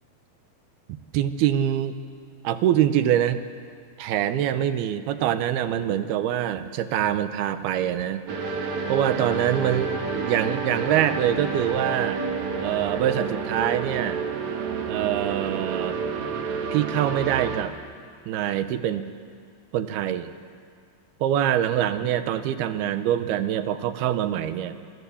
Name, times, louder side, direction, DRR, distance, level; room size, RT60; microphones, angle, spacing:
voice 1, 1.1-2.0 2.4-3.4 4.0-8.2 8.9-12.2 12.6-14.2 14.9-16.0 16.7-17.7 18.3-19.1 19.7-20.3 21.2-24.8, right 11 dB, 85° right, 10 dB, 3.0 m, -24 dB
sound 1, 8.3-17.6, right 5 dB, 55° right, 2.8 m, -29 dB
26.5 x 24.0 x 7.2 m, 2.1 s
omnidirectional pair, 4.4 m